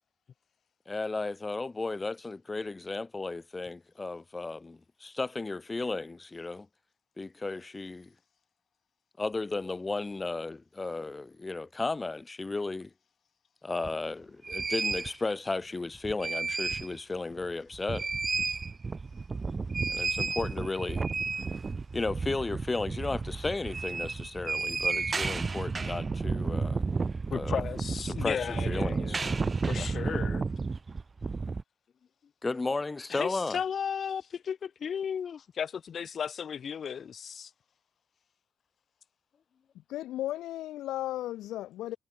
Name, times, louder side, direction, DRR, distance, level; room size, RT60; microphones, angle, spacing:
voice 1, 0.9-6.7 7.2-8.1 9.2-12.9 13.6-18.1 19.9-21.0 21.9-26.8 27.3-27.5 28.2-29.2 29.8-29.9 32.4-33.6, left 3 dB, 15° left, 4.8 m, -34 dB
sound 1, 13.8-13.9 14.4-15.1 15.9-17.0 17.3-17.4 17.7-31.6, right 4 dB, 20° right, 1.0 m, -32 dB
voice 2, 27.3-29.4 29.7-30.5 33.1-37.5, left 7 dB, 40° left, 4.5 m, -35 dB
voice 3, 39.9-42.0, left 14 dB, 85° left, 1.4 m, -35 dB
cardioid pair, 165°, 0 cm